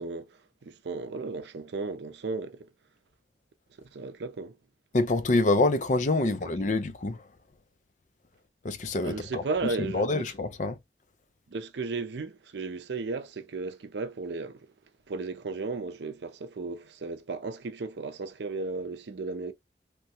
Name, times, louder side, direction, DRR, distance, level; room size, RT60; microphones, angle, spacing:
voice 1, 0.0-2.7 3.8-4.6 6.2-6.5 9.0-10.3 11.5-14.7 15.1-19.5, right 3 dB, 75° right, 0.5 m, -35 dB
voice 2, 4.9-7.2 8.6-9.4 9.9-10.8, left 2 dB, 45° left, 0.5 m, -26 dB
3.0 x 2.2 x 2.8 m
head